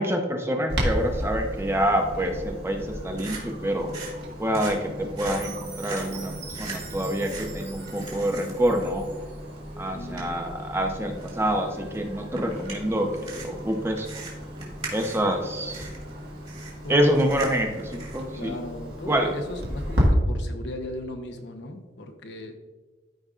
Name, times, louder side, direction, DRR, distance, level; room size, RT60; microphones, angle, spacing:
voice 1, 0.0-3.9 4.4-9.1 9.8-14.1 14.9-15.9 16.9-18.6 19.1-19.3, equal, 15° right, 3 dB, 0.8 m, -26 dB
Clock, 0.7-20.1, equal, 65° right, 1.7 m, -35 dB
sound 1, 2.8-18.4, right 2 dB, 35° right, 2.3 m, -42 dB
Chime, 5.3-9.4, right 6 dB, 80° right, 2.2 m, -44 dB
voice 2, 9.9-10.3 16.8-17.0 18.4-22.6, left 1 dB, 75° left, 4 dB, 0.9 m, -37 dB
13.5 x 5.2 x 2.5 m, 1.3 s
head